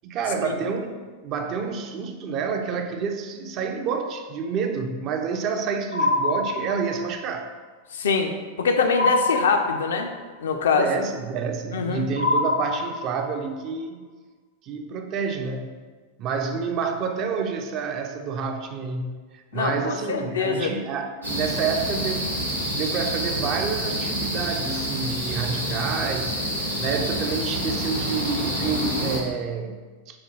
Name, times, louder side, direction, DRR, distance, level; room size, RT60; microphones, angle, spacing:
voice 1, 0.0-0.9 1.2-7.5 10.7-14.0 14.6-15.8 16.2-22.4 22.7-26.4 26.8-30.2, right 5 dB, 35° right, 5 dB, 0.3 m, -28 dB
sound 1, 5.9-7.2 8.9-10.2 12.2-13.4, left 2 dB, 80° left, 0.7 m, -25 dB
voice 2, 7.9-10.1 10.4-10.9 11.7-12.1 19.5-20.7, left 5 dB, 65° left, 5 dB, 0.3 m, -24 dB
sound 2, 21.2-29.2, equal, 85° right, 0.8 m, -28 dB
4.8 x 2.3 x 3.0 m, 1.4 s
figure-of-eight pair, 90°, 0 cm